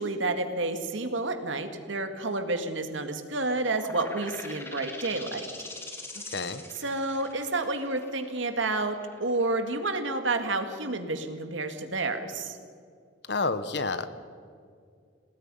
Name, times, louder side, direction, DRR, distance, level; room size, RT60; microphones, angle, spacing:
voice 1, 0.0-5.4 6.8-12.6, right 2 dB, 75° right, 7 dB, 2.1 m, -30 dB
sound 1, 3.7-11.0, left 2 dB, 15° left, 2.0 m, -43 dB
voice 2, 6.3-6.6 13.3-14.1, left 3 dB, 60° left, 12 dB, 1.2 m, -29 dB
28.0 x 19.0 x 5.6 m, 2.2 s
head